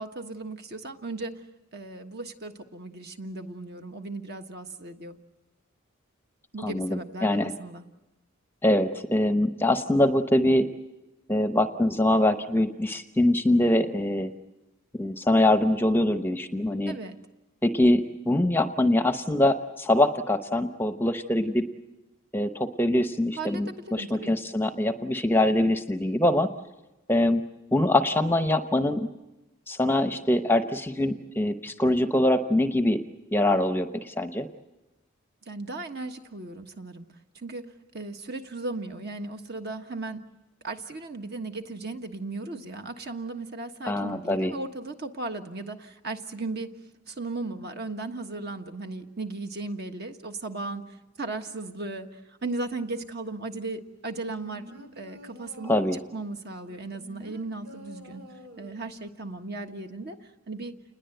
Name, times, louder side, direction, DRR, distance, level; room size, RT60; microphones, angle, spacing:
voice 1, 0.0-1.4 1.7-5.2 6.5-7.8 16.9-17.2 23.4-24.3 35.5-37.1 37.3-40.2 40.6-46.8 47.1-50.8 51.2-52.1 52.4-55.8 56.1-58.2 58.6-60.2 60.5-60.7, right 2 dB, 50° right, 6 dB, 1.5 m, -36 dB
voice 2, 6.6-7.5 8.6-10.7 11.3-14.3 14.9-16.9 17.6-21.7 22.3-26.5 27.1-27.4 27.7-29.1 29.7-33.0 33.3-34.5 43.8-44.5 55.6-56.0, left 1 dB, 10° left, 8 dB, 0.8 m, -23 dB
sound 1, 54.1-56.0 56.6-59.0 59.4-59.5, equal, 90° right, 3.0 m, -48 dB
29.0 x 20.5 x 8.0 m, 1.0 s
head